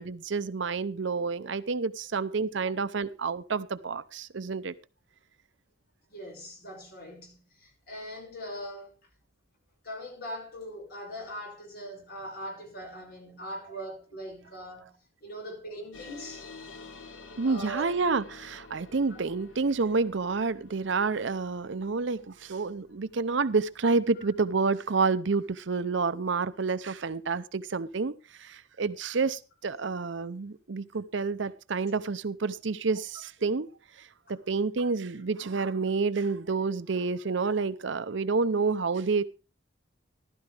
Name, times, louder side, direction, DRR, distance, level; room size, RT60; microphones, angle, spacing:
voice 1, 0.0-4.7 17.4-28.1 28.4-33.7 34.0-39.2, right 4 dB, 65° right, 0.6 m, -29 dB
voice 2, 6.1-8.9 9.8-15.0 15.2-16.4 17.4-17.9 18.9-19.2 24.2-24.3, equal, 50° left, 5.8 m, -41 dB
sound 1, 15.9-26.9, left 3 dB, 80° left, 1.5 m, -51 dB
14.5 x 12.5 x 3.4 m
head